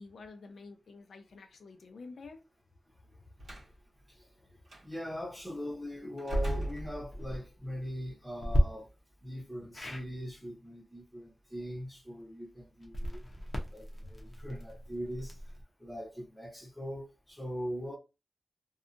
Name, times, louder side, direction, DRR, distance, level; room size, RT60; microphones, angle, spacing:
voice 1, 0.0-2.4, left 3 dB, 90° left, 0.5 m, -49 dB
Slam, 3.4-3.7 4.7-4.8 6.2-7.5, right 1 dB, 65° right, 1.1 m, -35 dB
voice 2, 4.8-8.9 9.2-13.2 13.7-15.3 15.8-18.0, equal, ahead, 0.9 m, -41 dB
sound 1, 7.0-7.4 8.4-8.6 9.7-10.1 12.8-15.6, equal, 30° left, 0.7 m, -33 dB
2.7 x 2.3 x 2.5 m
wide cardioid pair, 140°, 0 cm